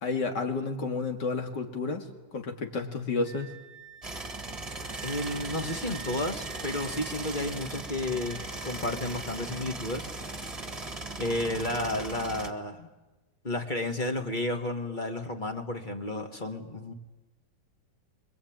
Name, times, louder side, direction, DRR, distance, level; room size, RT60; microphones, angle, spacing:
voice 1, 0.0-2.1 2.3-3.5, left 3 dB, 65° left, 5 dB, 2.9 m, -31 dB
Wind instrument woodwind instrument, 3.2-9.6, right 6 dB, 5° left, 3.3 m, -49 dB
sound 1, 4.0-12.5, right 2 dB, 20° right, 1.7 m, -38 dB
voice 2, 5.0-10.1 11.2-12.9 13.4-16.9, left 1 dB, 25° left, 4 dB, 2.2 m, -32 dB
26.0 x 23.0 x 9.0 m, 1.1 s
omnidirectional pair, 2.0 m